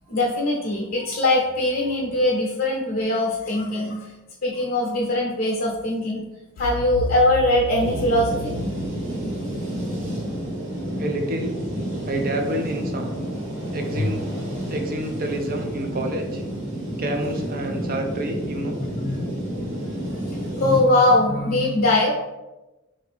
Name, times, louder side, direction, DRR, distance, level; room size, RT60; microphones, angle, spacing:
voice 1, 0.1-4.1 4.4-6.2 6.6-8.5 13.9-14.1 14.5-14.6 17.6-17.8 18.8-19.2 19.5-19.8 20.1-22.1, left 1 dB, 45° left, -3 dB, 0.7 m, -22 dB
sound 1, 6.6-11.4, right 1 dB, 70° left, 0.3 m, -34 dB
sound 2, 7.8-20.8, equal, 60° right, 1.1 m, -30 dB
voice 2, 11.0-11.6 12.1-13.2 13.7-14.2 14.7-16.4 17.0-18.8, right 1 dB, 45° right, 4 dB, 0.5 m, -28 dB
3.4 x 2.6 x 3.3 m, 1.0 s
head